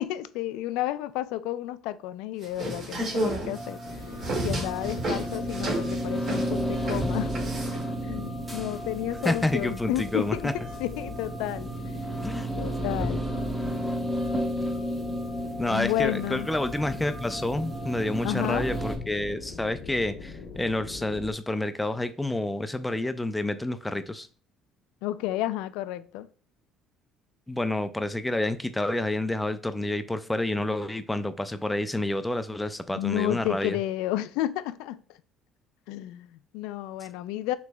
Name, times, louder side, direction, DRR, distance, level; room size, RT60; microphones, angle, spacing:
voice 1, 0.0-7.3 7.7-10.5 10.8-11.7 12.5-13.2 15.7-16.5 18.2-18.7 25.0-26.3 32.9-35.0 35.9-37.6, left 14 dB, 85° left, 0.3 m, -31 dB
sound 1, 2.4-7.8, right 1 dB, 50° right, 1.9 m, -32 dB
sound 2, 3.5-19.0, right 1 dB, 10° right, 1.1 m, -33 dB
sound 3, 3.8-21.3, left 5 dB, 65° left, 0.8 m, -42 dB
voice 2, 9.2-10.5 12.2-12.5 15.6-24.3 27.5-33.8, left 1 dB, 10° left, 0.4 m, -29 dB
6.0 x 3.1 x 2.2 m
cardioid pair, 105°, 0 cm